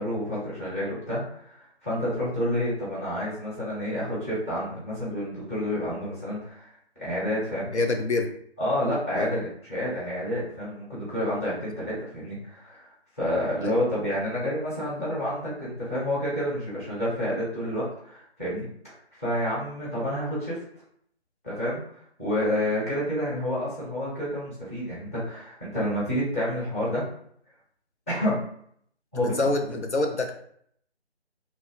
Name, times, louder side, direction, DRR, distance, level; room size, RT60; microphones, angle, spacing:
voice 1, 0.0-7.7 8.6-12.9 13.2-20.6 21.4-27.0 28.1-28.4 29.1-29.4, equal, 15° left, -9 dB, 0.9 m, -29 dB
voice 2, 7.7-8.3 9.1-9.3 13.6-13.8 29.4-30.3, left 2 dB, 80° left, 4 dB, 0.6 m, -26 dB
2.9 x 2.0 x 3.7 m, 0.65 s
figure-of-eight pair, 155°, 34 cm